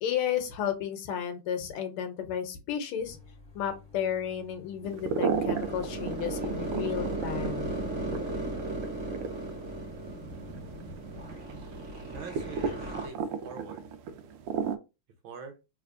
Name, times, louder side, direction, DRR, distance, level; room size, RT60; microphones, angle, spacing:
voice 1, 0.0-3.2 3.5-7.8, left 9 dB, 80° left, 6 dB, 1.7 m, -33 dB
sound 1, 3.0-10.7, left 7 dB, 5° left, 0.5 m, -53 dB
sound 2, 4.8-14.8, right 6 dB, 90° right, 1.5 m, -35 dB
sound 3, 5.3-13.1, right 2 dB, 45° right, 1.1 m, -36 dB
voice 2, 12.1-13.8 15.2-15.6, right 4 dB, 70° right, 5 dB, 1.4 m, -44 dB
3.5 x 3.3 x 2.5 m, 0.27 s
omnidirectional pair, 2.4 m